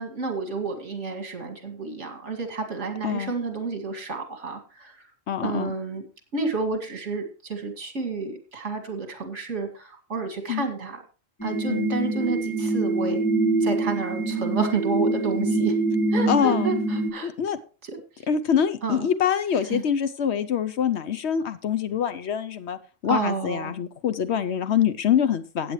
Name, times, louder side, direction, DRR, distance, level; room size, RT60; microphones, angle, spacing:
voice 1, 0.0-5.1 5.4-6.0 6.3-11.0 11.4-13.2 13.6-15.7 16.1-17.3 17.8-18.0 18.8-19.1 19.7-19.8 23.1-23.7, right 4 dB, 65° right, 5 dB, 2.5 m, -30 dB
voice 2, 5.3-5.7 10.5-10.6 11.7-11.9 16.3-16.7 17.2-17.6 18.3-25.7, left 8 dB, 65° left, 12 dB, 0.9 m, -25 dB
sound 1, 11.4-17.1, right 2 dB, 15° left, 1.6 m, -25 dB
15.5 x 8.7 x 3.1 m, 0.36 s
omnidirectional pair, 1.3 m